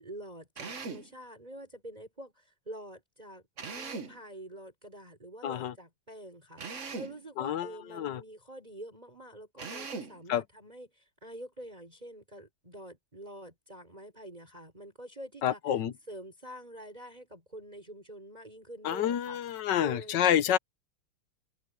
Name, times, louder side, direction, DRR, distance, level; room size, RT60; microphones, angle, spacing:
voice 1, 0.0-3.4 3.7-15.8 16.1-20.2, right 1 dB, 20° right, 5.2 m, -47 dB
Drill, 0.6-1.1 3.6-4.2 6.6-7.2 9.6-10.2, right 4 dB, 40° right, 1.6 m, -40 dB
voice 2, 5.4-5.7 7.4-8.2 10.3-10.4 15.4-15.9 18.8-20.6, left 10 dB, 65° left, 1.4 m, -28 dB
omnidirectional pair, 2.2 m